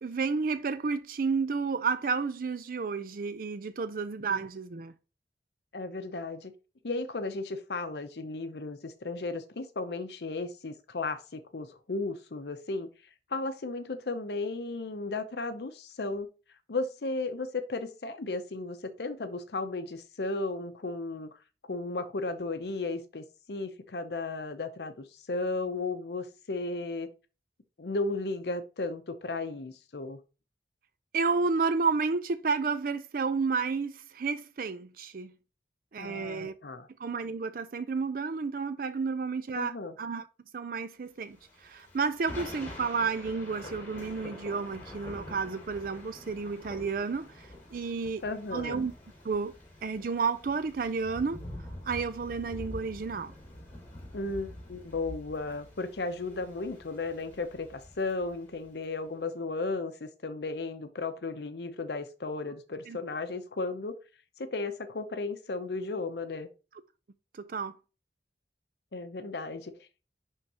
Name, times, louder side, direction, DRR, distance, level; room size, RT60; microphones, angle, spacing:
voice 1, 0.0-4.9 31.1-35.3 35.9-36.5 37.0-40.3 40.5-48.2 48.5-48.9 49.2-51.4 51.9-53.3 62.9-63.0 67.3-67.7, right 4 dB, 55° right, 0.4 m, -31 dB
voice 2, 5.7-6.5 6.8-12.9 13.3-16.3 16.7-21.4 21.7-27.1 27.8-30.2 36.0-36.9 39.6-39.9 48.2-48.8 54.1-64.0 64.4-66.5 68.9-70.0, left 3 dB, 65° left, 0.7 m, -35 dB
Thunder / Rain, 41.4-58.9, left 1 dB, 15° left, 3.3 m, -46 dB
10.5 x 3.6 x 2.9 m
head